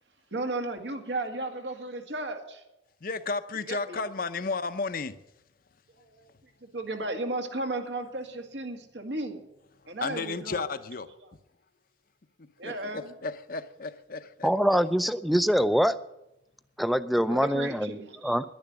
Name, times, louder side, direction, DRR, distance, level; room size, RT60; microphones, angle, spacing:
voice 1, 0.3-2.6 3.7-4.1 6.0-6.3 6.6-9.4 9.9-10.6 12.6-13.1 17.2-18.4, right 2 dB, 75° right, 4 dB, 2.0 m, -34 dB
voice 2, 3.0-5.1 10.0-11.1 12.4-14.5, left 4 dB, 50° left, 12 dB, 0.7 m, -33 dB
voice 3, 14.4-16.0 16.8-18.5, equal, ahead, 13 dB, 0.4 m, -24 dB
11.0 x 10.5 x 8.7 m, 0.89 s
head